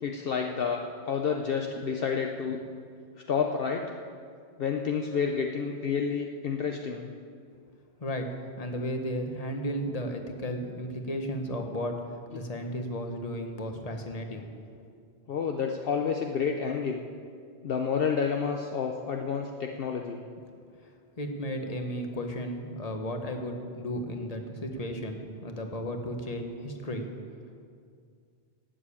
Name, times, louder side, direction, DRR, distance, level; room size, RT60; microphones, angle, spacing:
voice 1, 0.0-2.6 3.3-4.0 4.6-7.1 15.3-17.0 17.6-20.2, left 6 dB, 65° left, 3 dB, 0.9 m, -29 dB
voice 2, 8.6-12.0 12.3-14.5 20.6-20.7 21.2-27.1, equal, 35° left, 4 dB, 1.3 m, -34 dB
12.5 x 8.9 x 8.5 m, 2.2 s
omnidirectional pair, 1.1 m